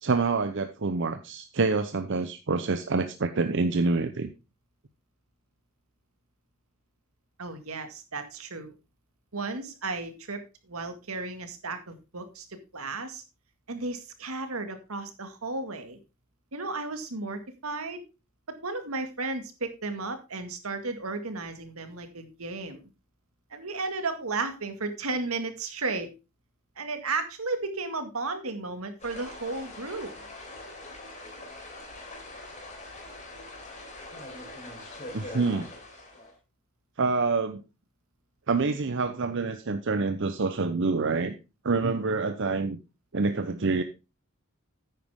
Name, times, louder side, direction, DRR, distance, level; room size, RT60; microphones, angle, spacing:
voice 1, 0.0-4.3 35.1-35.7 37.0-37.6 38.5-41.3 41.6-42.8 43.1-43.8, right 3 dB, 60° right, 8 dB, 0.7 m, -27 dB
voice 2, 7.4-8.7 9.3-10.4 10.7-12.5 12.7-13.2 13.7-16.0 16.5-18.0 18.6-22.8 23.5-26.1 26.8-30.1, right 3 dB, 85° right, 8 dB, 2.0 m, -34 dB
sound 1, 29.0-36.3, left 2 dB, 35° left, 4.2 m, -43 dB
9.8 x 9.2 x 3.6 m, 0.28 s
head